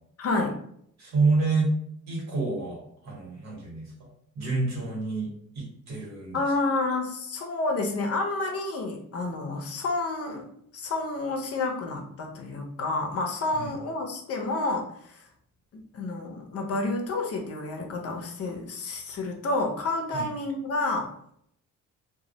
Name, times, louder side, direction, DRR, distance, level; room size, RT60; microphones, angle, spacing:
voice 1, 0.2-0.6 6.3-15.3 15.7-21.1, left 2 dB, 50° left, 2 dB, 0.6 m, -30 dB
voice 2, 1.0-1.7 2.1-4.1 4.3-6.4 13.5-13.7 20.1-20.3, right 3 dB, 60° right, -2 dB, 1.1 m, -28 dB
2.2 x 2.0 x 2.7 m, 0.69 s
cardioid pair, 90°, 30 cm